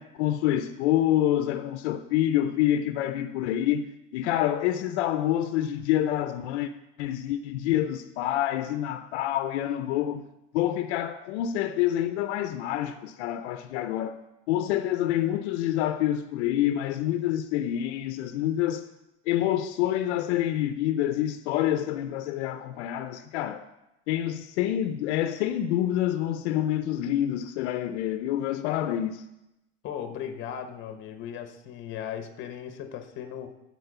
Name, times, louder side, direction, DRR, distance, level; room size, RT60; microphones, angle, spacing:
voice 1, 0.0-6.7 7.0-10.2 10.5-14.2 14.5-18.8 19.3-23.6 24.1-29.2, left 12 dB, 70° left, 0.7 m, -27 dB
voice 2, 29.8-33.5, left 9 dB, 35° left, 1.0 m, -37 dB
12.5 x 4.6 x 6.7 m
supercardioid pair, 160°, 34 cm